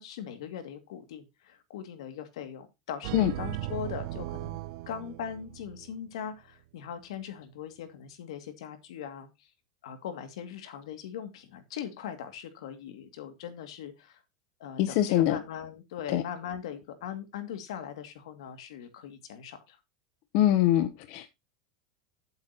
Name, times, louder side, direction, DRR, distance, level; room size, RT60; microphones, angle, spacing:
voice 1, 0.0-4.6 4.9-9.5 9.8-14.2 14.6-19.8, left 8 dB, 80° left, 2.3 m, -40 dB
sound 1, 3.0-6.0, right 16 dB, 60° right, 0.5 m, -37 dB
voice 2, 14.8-15.4 16.1-16.2 20.3-21.3, left 13 dB, 55° left, 0.9 m, -24 dB
13.5 x 8.1 x 2.9 m
supercardioid pair, 135°, 3 cm